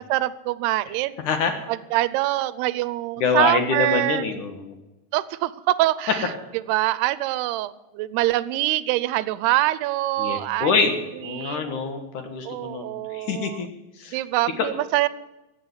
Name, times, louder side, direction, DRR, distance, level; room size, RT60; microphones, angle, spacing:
voice 1, 0.1-1.2 1.7-4.2 5.1-6.3 6.7-10.7 11.3-11.8 12.5-13.6 14.1-15.1, right 16 dB, 85° right, 17 dB, 2.7 m, -24 dB
voice 2, 3.2-4.7 10.2-13.7 14.0-14.2 14.6-14.7, left 5 dB, 60° left, 6 dB, 2.6 m, -25 dB
15.5 x 8.6 x 9.3 m, 1.0 s
omnidirectional pair, 4.6 m